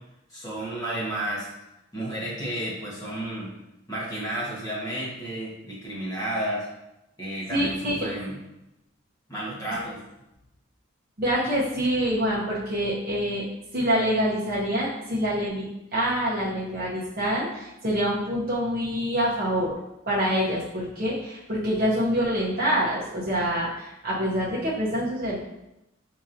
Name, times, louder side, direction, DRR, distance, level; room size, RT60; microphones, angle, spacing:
voice 1, 0.3-1.5 1.9-3.5 3.9-6.7 7.2-8.4 9.3-10.0, right 1 dB, 15° left, -6 dB, 1.1 m, -32 dB
voice 2, 7.5-8.1 11.2-13.4 13.7-19.7 20.1-25.5, equal, 45° right, -7 dB, 0.7 m, -26 dB
5.0 x 2.9 x 2.5 m, 0.90 s
head